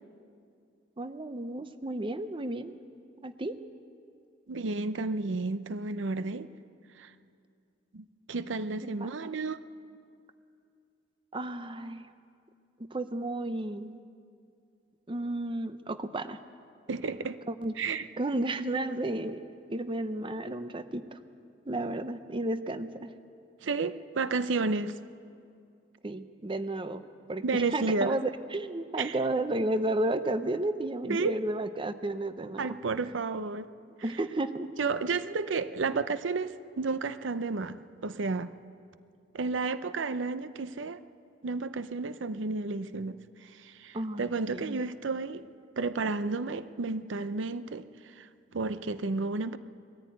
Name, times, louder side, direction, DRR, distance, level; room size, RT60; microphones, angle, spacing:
voice 1, 1.0-2.8 3.2-3.6 9.0-9.1 11.3-12.1 12.8-14.0 15.1-16.4 17.5-17.7 18.2-19.4 19.7-21.2 21.7-23.1 26.0-27.0 27.3-32.7 34.0-34.7 43.9-44.8, right 2 dB, 25° right, 11 dB, 0.7 m, -32 dB
voice 2, 4.5-6.5 7.0-7.1 7.9-9.6 16.9-17.4 17.8-18.1 23.6-25.0 27.4-28.2 29.0-29.2 31.1-31.3 32.6-33.7 34.8-37.8 38.0-38.5 39.3-41.0 41.4-45.4 45.8-49.6, right 3 dB, 80° right, 13 dB, 0.6 m, -32 dB
20.5 x 14.0 x 9.2 m, 2.4 s
head